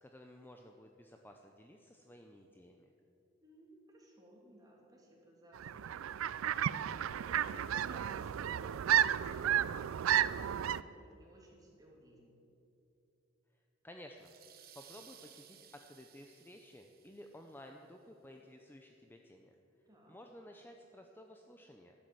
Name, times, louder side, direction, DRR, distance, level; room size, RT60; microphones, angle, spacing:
voice 1, 0.0-2.9 13.8-14.3 14.8-19.6 20.1-21.9, left 1 dB, 10° left, 3 dB, 0.6 m, -54 dB
voice 2, 3.4-12.4 19.9-20.2, right 1 dB, 20° right, -3 dB, 2.8 m, -59 dB
sound 1, 5.6-10.8, right 10 dB, 85° right, 0.4 m, -32 dB
sound 2, 14.2-17.6, right 9 dB, 50° right, 1.1 m, -59 dB
12.0 x 9.7 x 7.7 m, 2.9 s
head